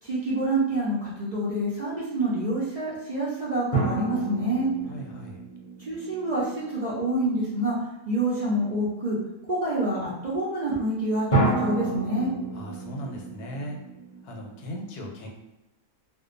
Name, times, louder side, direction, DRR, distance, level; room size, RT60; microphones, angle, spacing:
voice 1, 0.0-4.7 5.9-7.8 8.1-9.2 9.5-12.3, right 1 dB, 70° right, -8 dB, 0.4 m, -27 dB
sound 1, 3.7-7.1 11.3-14.6, right 2 dB, 40° left, 0.8 m, -29 dB
voice 2, 4.8-5.4 12.5-13.8 14.2-15.3, equal, 85° left, 1 dB, 1.1 m, -38 dB
2.6 x 2.2 x 2.5 m, 0.98 s
omnidirectional pair, 1.6 m